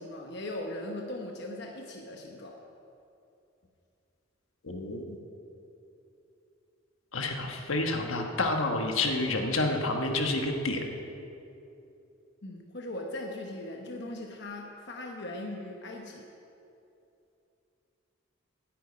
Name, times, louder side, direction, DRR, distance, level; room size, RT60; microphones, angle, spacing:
voice 1, 0.0-2.6 12.4-16.3, left 1 dB, 55° left, 1 dB, 1.0 m, -39 dB
voice 2, 4.6-5.2 7.1-10.9, left 2 dB, 75° left, 3 dB, 1.3 m, -29 dB
9.5 x 9.2 x 9.6 m, 2.8 s
head